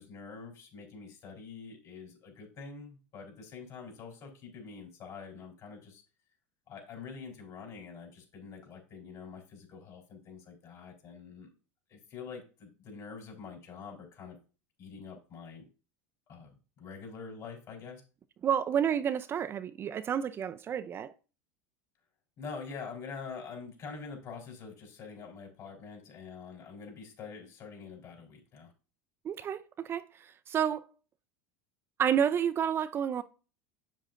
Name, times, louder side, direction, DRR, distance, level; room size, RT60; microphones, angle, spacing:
voice 1, 0.0-6.0 6.7-11.5 11.9-14.4 14.8-15.7 16.3-16.5 16.8-18.0 22.4-28.7, left 5 dB, 45° left, 3.8 m, -45 dB
voice 2, 18.4-21.1 29.2-30.8 32.0-33.2, right 8 dB, 30° right, 0.4 m, -30 dB
7.6 x 7.4 x 2.5 m
supercardioid pair, 110°, 7 cm